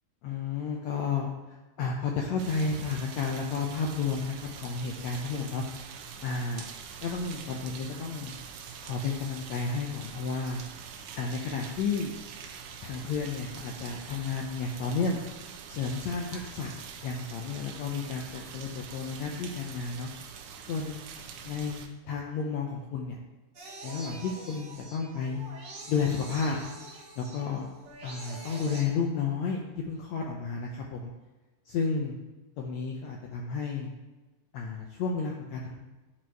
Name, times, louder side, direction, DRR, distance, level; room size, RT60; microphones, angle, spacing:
voice 1, 0.2-5.6 6.2-6.7 7.0-8.3 8.8-10.6 11.2-12.1 12.8-15.2 15.7-16.7 17.0-20.1 20.7-21.0 21.4-23.2 23.8-25.4 25.9-26.6 27.2-27.7 28.0-31.1 31.7-32.2 32.6-33.9 34.5-35.7, left 5 dB, 75° left, 0 dB, 1.7 m, -32 dB
sound 1, 2.4-21.9, right 7 dB, 80° right, 2.1 m, -44 dB
sound 2, 23.5-28.8, right 3 dB, 50° right, 1.3 m, -45 dB
11.0 x 4.3 x 4.5 m, 1.1 s
omnidirectional pair, 3.9 m